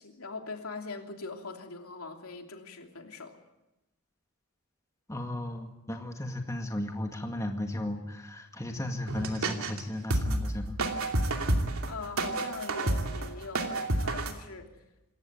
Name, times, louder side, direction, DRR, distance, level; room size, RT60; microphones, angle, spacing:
voice 1, 0.0-3.4 11.9-14.7, left 3 dB, 75° left, 4 dB, 3.0 m, -42 dB
voice 2, 5.1-10.8, left 1 dB, 15° left, 3 dB, 2.0 m, -35 dB
sound 1, 9.1-9.8 10.1-14.3, right 2 dB, 70° right, 2.8 m, -29 dB
27.0 x 14.5 x 9.3 m, 0.96 s
head